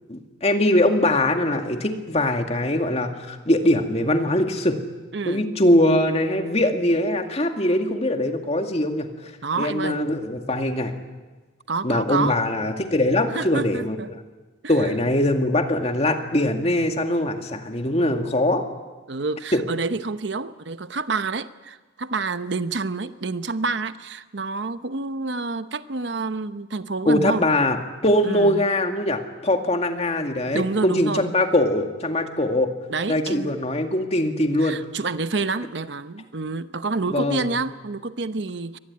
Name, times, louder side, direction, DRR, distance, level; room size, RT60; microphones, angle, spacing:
voice 1, 0.1-4.8 5.3-9.3 9.6-10.9 11.8-14.2 14.7-18.6 19.5-19.6 27.1-27.8 28.0-32.7 33.1-34.8 37.1-37.5, left 1 dB, 35° left, 5 dB, 2.1 m, -22 dB
voice 2, 5.1-5.4 9.4-10.0 11.7-12.4 13.3-14.1 14.6-14.9 19.1-27.4 28.2-28.6 30.5-31.4 32.9-33.6 34.6-38.8, right 3 dB, 70° right, 12 dB, 0.9 m, -28 dB
24.0 x 19.5 x 9.6 m, 1.3 s
head